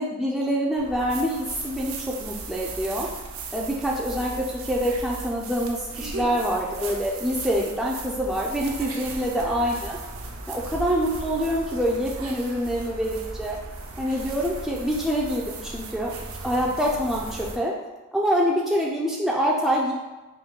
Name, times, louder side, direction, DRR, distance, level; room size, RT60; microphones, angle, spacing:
voice 1, 0.0-1.4 1.6-3.1 3.5-10.0 10.5-13.5 14.0-16.1 16.4-17.7 18.1-19.9, equal, ahead, -4 dB, 0.3 m, -25 dB
sound 1, 0.8-17.6, right 3 dB, 75° right, 0.5 m, -37 dB
3.7 x 2.5 x 4.3 m, 1.2 s
head